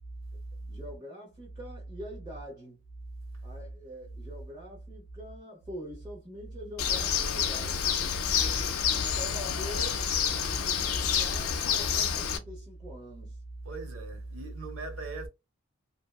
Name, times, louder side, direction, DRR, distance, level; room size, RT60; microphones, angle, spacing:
voice 1, 0.6-2.8 3.4-7.9 8.4-10.1 10.4-13.4, equal, 20° right, 0.9 m, -44 dB
Bird, 6.8-12.4, left 7 dB, 90° left, 0.5 m, -28 dB
voice 2, 13.6-15.3, right 3 dB, 75° right, 0.8 m, -38 dB
2.7 x 2.2 x 2.3 m
head